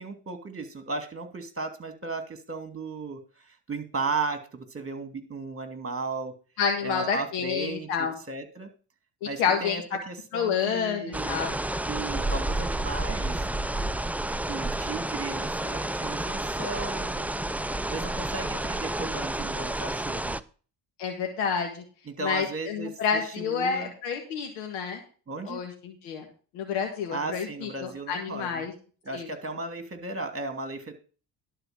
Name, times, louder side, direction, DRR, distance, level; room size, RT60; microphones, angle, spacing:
voice 1, 0.0-6.3 6.8-8.7 9.2-11.4 11.9-13.4 14.3-17.3 17.9-20.4 22.1-23.9 25.3-25.6 27.1-28.7 29.0-30.9, right 3 dB, 25° right, 7 dB, 2.8 m, -35 dB
voice 2, 6.6-8.1 9.4-9.8 10.3-11.6 21.0-21.8 22.2-25.0 25.5-26.3 26.5-28.7 29.1-29.3, left 6 dB, 85° left, 3 dB, 1.8 m, -29 dB
sound 1, 11.1-20.4, right 1 dB, 5° right, 0.5 m, -30 dB
11.5 x 4.7 x 7.6 m, 0.37 s
supercardioid pair, 65°, 49 cm